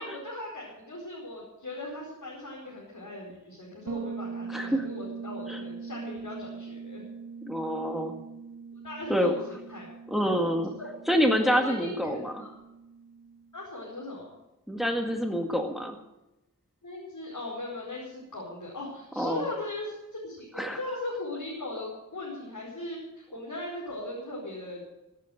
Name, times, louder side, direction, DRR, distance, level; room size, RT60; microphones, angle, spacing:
voice 1, 0.0-7.0 8.8-9.9 10.8-10.9 11.4-11.9 12.4-12.5 13.5-14.3 16.8-24.8, left 2 dB, 75° left, -5 dB, 4.9 m, -38 dB
Bass guitar, 3.9-13.5, right 5 dB, 80° right, 1.5 m, -41 dB
voice 2, 4.5-4.9 5.5-5.6 7.5-8.1 9.1-9.3 10.1-10.7 11.1-12.4 14.7-16.0 19.2-19.4 20.6-20.8, equal, ahead, 3 dB, 1.9 m, -27 dB
16.5 x 8.5 x 7.9 m, 0.94 s
wide cardioid pair, 40°, 32 cm